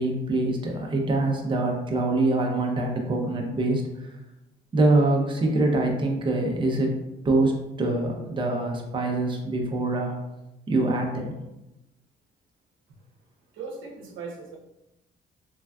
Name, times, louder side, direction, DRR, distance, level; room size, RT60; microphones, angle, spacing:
voice 1, 0.0-3.8 4.7-6.9 7.2-10.1 10.7-11.3, right 2 dB, 25° right, 1 dB, 0.5 m, -24 dB
voice 2, 13.6-14.6, right 4 dB, 80° right, 0 dB, 0.7 m, -38 dB
3.3 x 2.4 x 2.2 m, 0.92 s
cardioid pair, 90°, 20 cm